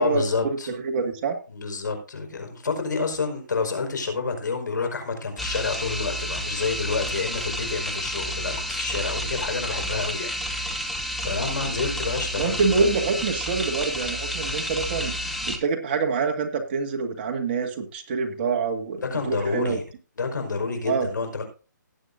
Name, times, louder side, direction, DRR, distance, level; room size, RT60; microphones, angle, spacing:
voice 1, 0.0-0.7 1.5-12.6 14.9-15.1 19.1-19.8 20.2-21.4, left 4 dB, 70° left, 6 dB, 4.9 m, -29 dB
voice 2, 0.7-1.4 12.4-15.1 15.5-19.8 20.8-21.1, right 4 dB, 30° right, 3 dB, 2.0 m, -26 dB
sound 1, 5.4-15.6, equal, ahead, 0.7 m, -30 dB
18.5 x 8.4 x 2.6 m, 0.34 s
hypercardioid pair, 165°, 10 cm